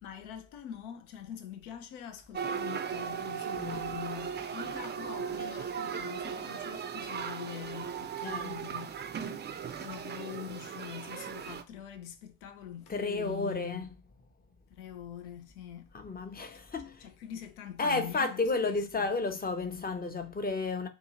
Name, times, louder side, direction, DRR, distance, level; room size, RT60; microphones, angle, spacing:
voice 1, 0.0-8.9 9.8-13.9 14.7-15.9 16.5-16.6 17.0-19.1, left 10 dB, 85° left, 0.5 m, -44 dB
sound 1, 2.3-11.6, right 7 dB, 25° right, 0.4 m, -37 dB
voice 2, 3.6-3.9 8.2-8.6 12.9-13.9 15.9-17.1 17.8-20.9, left 3 dB, 20° left, 0.7 m, -32 dB
2.6 x 2.5 x 2.9 m
hypercardioid pair, 40°, 42 cm